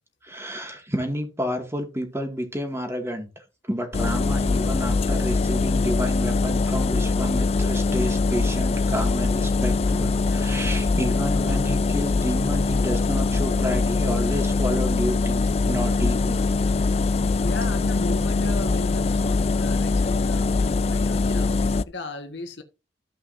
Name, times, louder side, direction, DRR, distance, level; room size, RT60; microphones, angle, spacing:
voice 1, 0.2-3.3 3.7-16.4, equal, 15° right, 2.2 m, -30 dB
sound 1, 3.9-21.8, left 3 dB, 35° left, 0.4 m, -22 dB
voice 2, 17.4-20.5 20.9-22.6, left 1 dB, 70° left, 1.5 m, -36 dB
14.0 x 5.6 x 2.7 m
head